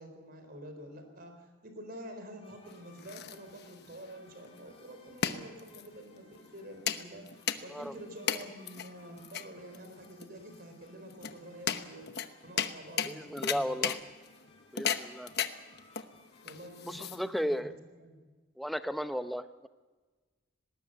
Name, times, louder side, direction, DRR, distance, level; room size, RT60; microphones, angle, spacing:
voice 1, 0.0-13.9 16.4-18.3, equal, 50° right, 6 dB, 4.2 m, -48 dB
sound 1, 2.4-17.0, left 2 dB, 30° left, 4.7 m, -63 dB
sound 2, 2.7-17.6, left 8 dB, 55° left, 1.0 m, -37 dB
voice 2, 13.0-14.0 14.7-15.3 16.9-17.7 18.6-19.7, equal, ahead, 10 dB, 0.7 m, -35 dB
19.0 x 19.0 x 7.9 m, 1.3 s
head